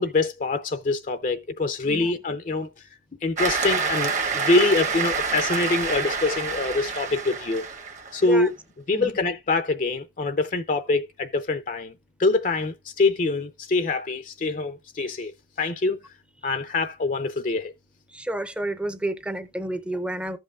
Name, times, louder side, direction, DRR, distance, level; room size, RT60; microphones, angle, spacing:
voice 1, 0.0-2.7 3.2-7.7 8.1-8.5 8.9-11.9 12.2-16.0 16.4-17.7, left 3 dB, 45° left, 0.5 m, -25 dB
Cheering / Applause, 3.4-8.3, right 5 dB, 45° right, 1.1 m, -27 dB
voice 2, 18.1-20.4, right 1 dB, 5° right, 0.6 m, -30 dB
15.0 x 5.4 x 2.4 m
head